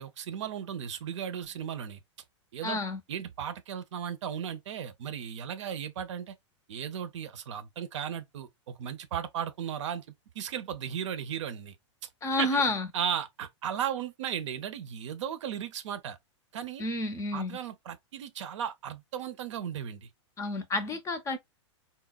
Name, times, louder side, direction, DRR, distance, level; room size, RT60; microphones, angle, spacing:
voice 1, 0.0-2.0 2.5-2.8 3.1-6.4 6.7-10.0 10.3-11.8 12.4-12.6 12.9-16.2 16.5-16.8 17.3-20.1, right 8 dB, 70° right, 0.6 m, -36 dB
voice 2, 2.6-3.0 12.2-12.9 16.8-17.6 20.4-21.4, left 2 dB, 20° left, 0.5 m, -30 dB
4.0 x 2.1 x 2.2 m
hypercardioid pair, 115°, 16 cm